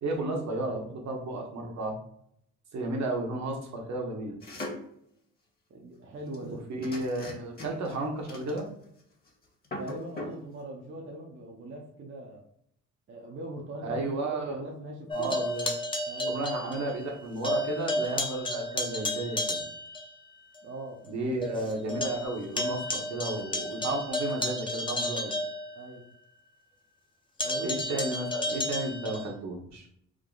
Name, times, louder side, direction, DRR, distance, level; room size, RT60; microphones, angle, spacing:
voice 1, 0.0-2.0 2.7-4.4 6.4-8.7 13.8-14.6 15.1-15.7 16.3-19.6 21.1-25.3 27.6-29.9, right 2 dB, 65° right, 1 dB, 1.1 m, -33 dB
sound 1, 4.4-4.9 6.3-6.5 6.8-7.9 8.3-9.0 9.3-9.4 9.6-10.4, left 1 dB, 30° left, 1.3 m, -39 dB
voice 2, 5.7-6.6 9.8-12.4 13.1-15.4 16.1-16.7 20.6-21.7 25.8-26.0 27.4-28.0, right 1 dB, 40° right, -1 dB, 0.7 m, -41 dB
sound 2, 15.1-17.2 17.4-20.1 20.6-20.7 21.1-21.2 21.4-26.2 27.4-29.3, left 1 dB, 15° left, 0.7 m, -32 dB
3.7 x 2.1 x 3.7 m, 0.70 s
cardioid pair, 90°, 30 cm